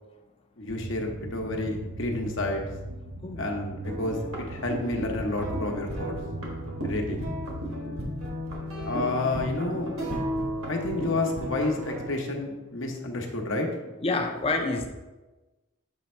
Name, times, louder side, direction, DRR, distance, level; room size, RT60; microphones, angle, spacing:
voice 1, 0.6-2.6 3.4-6.2 6.8-7.3 8.8-10.0 10.7-13.7, left 2 dB, 65° left, 2 dB, 0.9 m, -30 dB
sound 1, 0.7-7.7, right 2 dB, 60° right, 0.6 m, -39 dB
sound 2, 3.8-12.2, equal, 80° right, 1.5 m, -34 dB
voice 2, 14.0-14.9, left 3 dB, 25° left, 4 dB, 0.5 m, -27 dB
7.2 x 3.4 x 4.3 m, 1.1 s
head